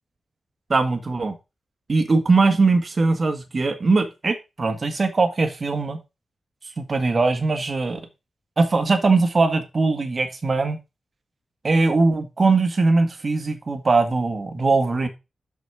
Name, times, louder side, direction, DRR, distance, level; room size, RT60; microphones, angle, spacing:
voice 1, 0.7-1.3 1.9-6.0 6.8-8.0 8.6-10.8 11.6-15.1, right 3 dB, 40° right, 1.7 m, -20 dB
6.4 x 6.3 x 4.7 m
wide cardioid pair, 105°, 0 cm